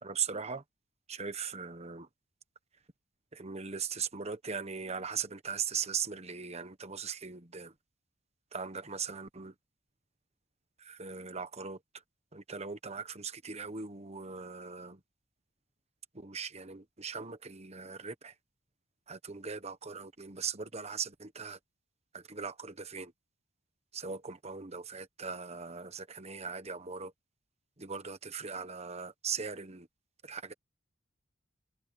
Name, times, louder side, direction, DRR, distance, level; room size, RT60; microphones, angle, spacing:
voice 1, 0.0-0.6 1.1-2.1 3.3-7.7 8.5-9.5 10.8-11.8 12.3-15.0 16.1-18.3 19.1-21.6 22.1-23.1 23.9-27.1 27.8-29.9 30.2-30.5, right 6 dB, 35° right, 1.2 m, -39 dB
head